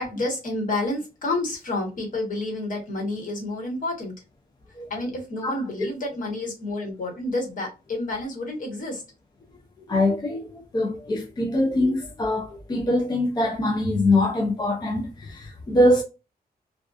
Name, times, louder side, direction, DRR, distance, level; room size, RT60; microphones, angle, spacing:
voice 1, 0.0-4.2 4.9-9.0, left 2 dB, 55° left, 1.1 m, -29 dB
voice 2, 9.9-16.0, left 1 dB, 25° left, 0.4 m, -23 dB
2.3 x 2.3 x 2.3 m
wide cardioid pair, 165°, 16 cm